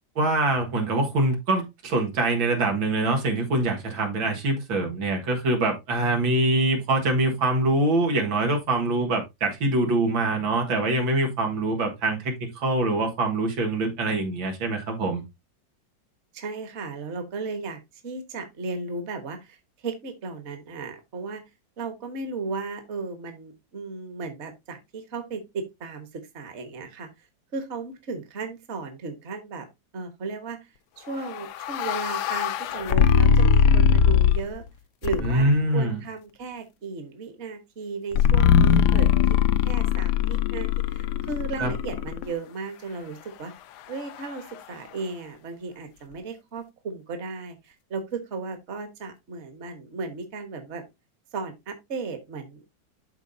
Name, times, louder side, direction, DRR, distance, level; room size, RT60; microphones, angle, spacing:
voice 1, 0.2-15.2 35.2-36.0 41.6-41.7, right 2 dB, 90° right, 2.5 m, -24 dB
voice 2, 16.3-21.4 21.8-27.1 27.5-29.7 29.9-34.7 35.0-39.1 39.6-43.5 43.9-50.8 51.3-52.6, right 4 dB, 40° right, 1.4 m, -35 dB
sound 1, 31.2-34.6 35.0-35.6 38.1-42.2, left 7 dB, 70° left, 1.1 m, -20 dB
12.0 x 4.1 x 2.7 m
omnidirectional pair, 2.1 m